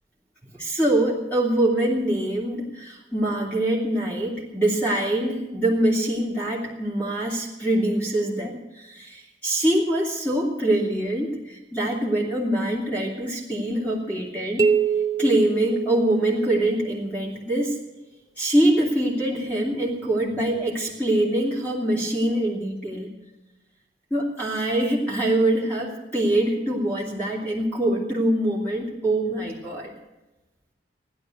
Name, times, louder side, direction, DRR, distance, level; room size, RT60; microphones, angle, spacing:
voice 1, 0.6-14.7 15.2-17.8 18.4-23.1 24.1-29.9, right 1 dB, 10° left, -4 dB, 2.9 m, -24 dB
sound 1, 14.6-16.5, right 6 dB, 20° right, 0.7 m, -24 dB
16.0 x 11.0 x 7.9 m, 1.0 s
head